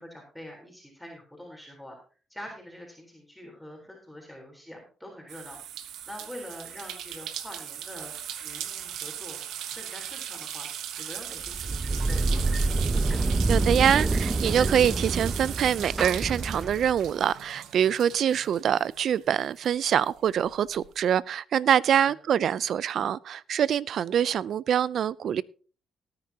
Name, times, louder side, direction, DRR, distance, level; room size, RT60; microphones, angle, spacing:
voice 1, 0.0-2.0 2.3-9.4 9.7-10.7 11.0-12.6 22.0-22.1, left 1 dB, ahead, 3.8 m, -45 dB
sound 1, 5.3-19.3 19.6-20.9, right 10 dB, 85° right, 1.1 m, -38 dB
sound 2, 11.4-17.1, right 3 dB, 25° right, 0.7 m, -27 dB
voice 2, 13.5-25.4, right 9 dB, 65° right, 0.4 m, -25 dB
17.5 x 9.7 x 2.8 m
cardioid pair, 90°, 0 cm